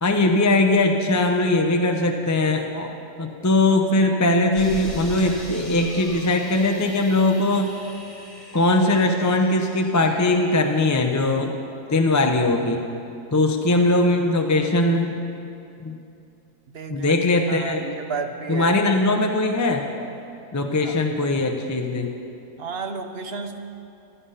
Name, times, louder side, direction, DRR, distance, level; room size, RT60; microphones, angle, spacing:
voice 1, 0.0-2.9 3.2-7.7 8.5-11.5 11.9-12.8 13.3-15.1 15.8-15.9 16.9-17.8 18.5-19.8 20.5-22.1, left 2 dB, 15° left, 3 dB, 0.6 m, -20 dB
sound 1, 4.5-11.0, left 1 dB, ahead, 4.0 m, -41 dB
voice 2, 16.7-17.1 17.5-18.8 20.8-21.0 22.6-23.6, right 5 dB, 45° right, 6 dB, 0.9 m, -32 dB
15.5 x 12.5 x 5.7 m, 2.6 s
omnidirectional pair, 1.7 m